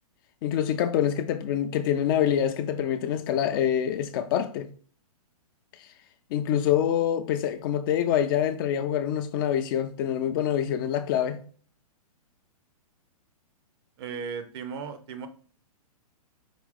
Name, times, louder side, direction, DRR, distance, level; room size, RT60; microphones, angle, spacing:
voice 1, 0.4-4.7 6.3-11.4, left 10 dB, 35° left, 0.4 m, -26 dB
voice 2, 14.0-15.3, right 6 dB, 40° right, 0.6 m, -36 dB
4.9 x 2.6 x 3.6 m
hypercardioid pair, 135°, 20 cm